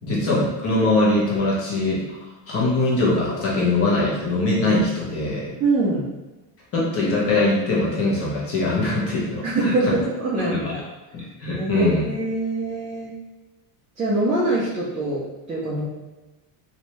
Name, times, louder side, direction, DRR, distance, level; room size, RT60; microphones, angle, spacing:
voice 1, 0.0-5.6 6.7-9.9 10.4-10.7 11.1-12.0, left 2 dB, 30° left, -5 dB, 1.0 m, -22 dB
voice 2, 5.6-6.1 9.4-10.8 11.5-13.1 14.0-15.8, right 2 dB, 15° right, -9 dB, 0.4 m, -24 dB
3.2 x 2.7 x 3.0 m, 1.1 s
cardioid pair, 150°, 47 cm